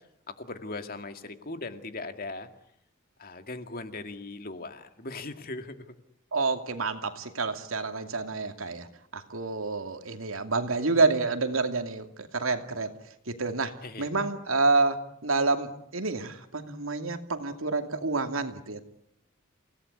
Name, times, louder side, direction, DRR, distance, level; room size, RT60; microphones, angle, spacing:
voice 1, 0.3-2.5 3.2-5.8 13.8-14.1, left 2 dB, 45° left, 7 dB, 2.3 m, -39 dB
voice 2, 6.3-8.9 9.1-12.9 13.3-18.8, right 3 dB, 80° right, 7 dB, 2.6 m, -28 dB
28.5 x 18.0 x 9.7 m, 0.75 s
head